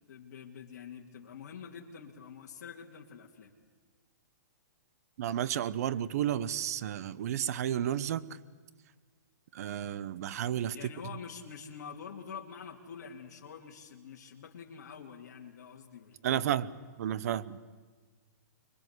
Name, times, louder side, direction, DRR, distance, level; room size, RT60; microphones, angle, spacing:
voice 1, 0.1-3.5 10.7-16.5, left 7 dB, 60° left, -1 dB, 2.5 m, -46 dB
voice 2, 5.2-8.3 9.5-10.7 16.2-16.7 17.0-17.6, right 10 dB, 55° right, 18 dB, 1.0 m, -32 dB
25.0 x 22.5 x 8.3 m, 1.4 s
hypercardioid pair, 145°, 10 cm